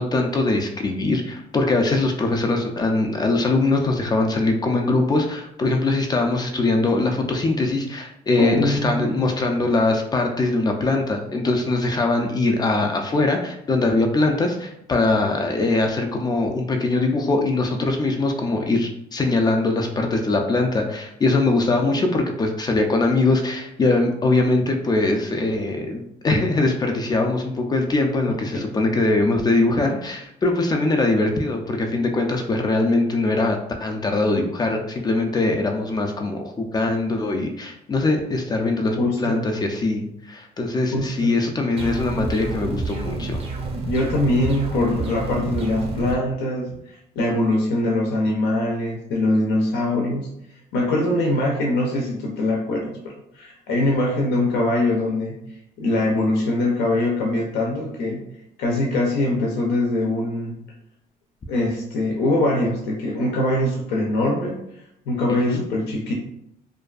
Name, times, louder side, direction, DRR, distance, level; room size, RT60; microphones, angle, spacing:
voice 1, 0.0-43.4 65.3-65.6, left 2 dB, 25° left, 3 dB, 0.3 m, -22 dB
voice 2, 8.4-9.3 28.5-28.8 38.9-39.5 40.9-41.4 43.9-50.3 50.7-55.4 55.8-58.2 58.6-60.6 61.5-64.6 65.1-66.1, left 1 dB, 80° left, -1 dB, 0.5 m, -23 dB
sound 1, 41.8-46.2, right 2 dB, 35° right, 0.5 m, -29 dB
2.5 x 2.3 x 2.3 m, 0.76 s
cardioid pair, 110°, 17 cm